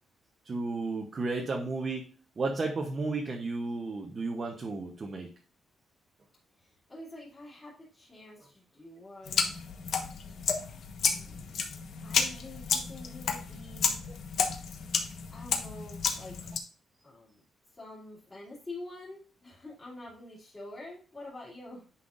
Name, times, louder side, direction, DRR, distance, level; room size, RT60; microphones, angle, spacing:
voice 1, 0.4-2.1 2.4-5.3, right 3 dB, 30° right, 2 dB, 0.8 m, -33 dB
voice 2, 6.5-9.5 11.0-11.7 12.0-13.9 15.3-16.4 17.0-17.4 17.7-21.9, left 2 dB, 20° left, -8 dB, 2.5 m, -47 dB
sound 1, 9.3-16.6, left 6 dB, 60° left, 1.1 m, -32 dB
9.6 x 5.7 x 2.5 m, 0.40 s
wide cardioid pair, 170°, 0 cm